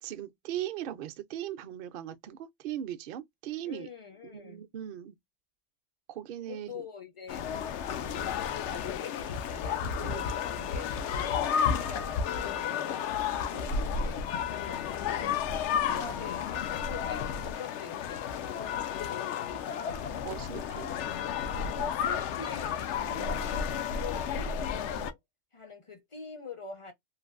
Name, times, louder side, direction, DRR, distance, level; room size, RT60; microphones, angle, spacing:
voice 1, 0.0-3.9 4.2-5.1 6.1-6.8 10.0-10.2 13.5-13.7 20.2-20.9, right 11 dB, 60° right, 0.6 m, -39 dB
voice 2, 3.6-4.6 6.5-7.5 7.9-8.3 8.7-12.9 13.9-15.4 15.8-18.7 19.0-19.7 21.7-25.2 25.5-26.9, left 5 dB, 35° left, 0.5 m, -45 dB
sound 1, 7.3-25.1, left 7 dB, 75° left, 0.9 m, -32 dB
3.2 x 2.5 x 2.3 m
omnidirectional pair, 1.2 m